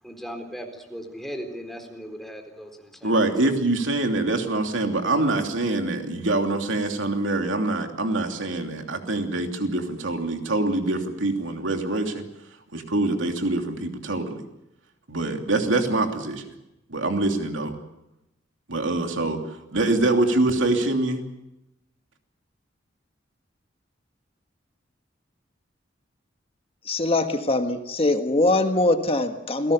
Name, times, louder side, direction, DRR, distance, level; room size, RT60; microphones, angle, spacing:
voice 1, 0.0-3.1 3.4-3.5, equal, ahead, 3 dB, 4.0 m, -37 dB
voice 2, 3.0-12.2 12.7-14.4 15.1-16.4 16.9-17.7 18.7-19.4 19.7-21.2, right 2 dB, 85° right, 4 dB, 3.0 m, -24 dB
voice 3, 26.8-29.7, left 2 dB, 30° left, 6 dB, 1.6 m, -22 dB
28.5 x 18.0 x 6.9 m, 0.89 s
head